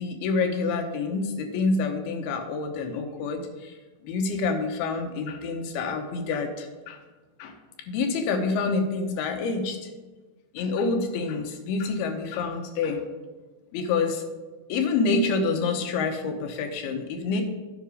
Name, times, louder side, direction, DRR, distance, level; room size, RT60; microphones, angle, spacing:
voice 1, 0.0-3.8 4.0-7.0 7.4-7.6 7.9-9.9 10.5-13.0 13.7-14.2 14.7-17.4, left 4 dB, 80° left, 5 dB, 2.8 m, -27 dB
9.9 x 5.7 x 5.0 m, 1.3 s
omnidirectional pair, 4.4 m